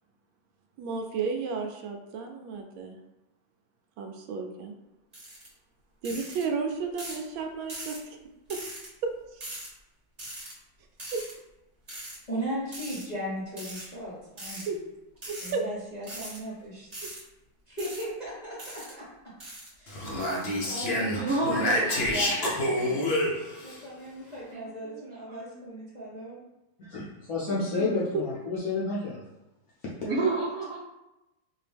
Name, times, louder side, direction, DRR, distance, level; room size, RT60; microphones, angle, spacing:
voice 1, 0.8-3.0 4.0-4.7 6.0-8.2 8.5-8.6 9.0-9.4 14.7-14.8 15.3-15.6 28.1-28.2, right 5 dB, 80° right, 3 dB, 1.3 m, -33 dB
sound 1, 5.1-5.5 6.0-6.4 7.0-7.2 7.7-8.0 8.5-8.9 9.4-9.7 10.2-10.5 11.0-11.3 11.9-12.2 12.7-13.0 13.6-13.9 14.4-14.7 15.2-15.5 16.0-16.4 16.9-17.2 17.8-18.0 18.6-18.9 19.4-19.7 20.2-20.4, right 1 dB, 25° right, 1.0 m, -40 dB
voice 2, 12.3-14.7 15.4-16.9 17.7-19.1 19.8-20.3 20.6-23.1 23.6-26.4, right 1 dB, 30° left, -9 dB, 0.8 m, -37 dB
Speech, 19.9-23.8, left 1 dB, 90° left, 0.5 m, -28 dB
voice 3, 21.2-23.0 24.5-25.6 27.5-27.9 30.0-30.8, right 2 dB, 60° right, -6 dB, 1.0 m, -32 dB
voice 4, 26.8-29.2, left 3 dB, 65° left, -6 dB, 1.0 m, -30 dB
4.2 x 2.7 x 3.3 m, 0.95 s
omnidirectional pair, 2.2 m